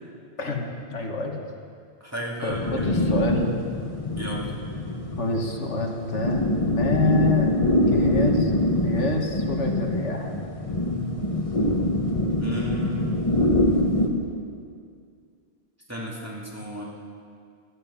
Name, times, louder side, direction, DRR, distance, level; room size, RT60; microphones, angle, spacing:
voice 1, 0.4-1.4 2.4-3.6 5.2-10.3, left 2 dB, 85° left, 2 dB, 1.8 m, -28 dB
voice 2, 2.0-2.9 4.2-4.5 12.4-13.2 15.9-16.8, equal, 15° right, -5 dB, 2.6 m, -33 dB
sound 1, 2.5-14.1, left 1 dB, 30° left, 1.4 m, -24 dB
16.0 x 13.0 x 5.7 m, 2.2 s
omnidirectional pair, 1.2 m